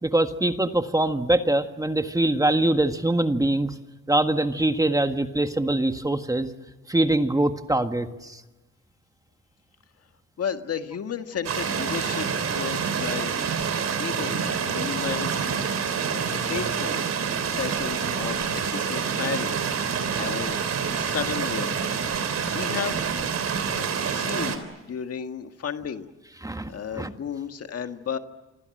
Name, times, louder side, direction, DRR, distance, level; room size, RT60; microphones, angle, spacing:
voice 1, 0.0-3.7 4.1-6.5 6.9-8.4 26.4-27.1, right 1 dB, 10° right, 8 dB, 1.5 m, -23 dB
voice 2, 10.4-13.3 14.0-15.6 16.1-17.0 17.2-19.6 20.1-20.6 20.9-21.9 22.5-23.0 23.8-26.1 26.7-28.2, left 7 dB, 55° left, 7 dB, 1.8 m, -33 dB
sound 1, 11.4-24.6, right 6 dB, 60° right, 3.7 m, -27 dB
29.0 x 26.0 x 7.8 m, 1.1 s
cardioid pair, 90°, 30 cm